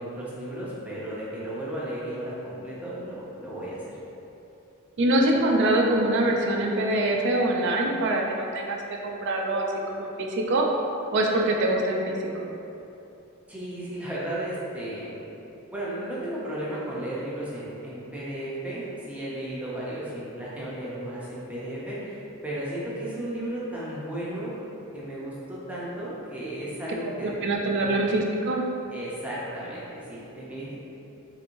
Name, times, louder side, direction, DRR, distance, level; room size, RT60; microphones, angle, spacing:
voice 1, 0.0-4.0 13.5-15.2 15.7-24.5 24.9-27.3 27.8-28.0 28.9-30.7, right 1 dB, 5° right, -8 dB, 0.6 m, -34 dB
voice 2, 5.0-10.7 11.1-12.5 27.2-28.6, right 1 dB, 55° right, 0 dB, 0.4 m, -24 dB
3.2 x 3.0 x 2.6 m, 2.8 s
head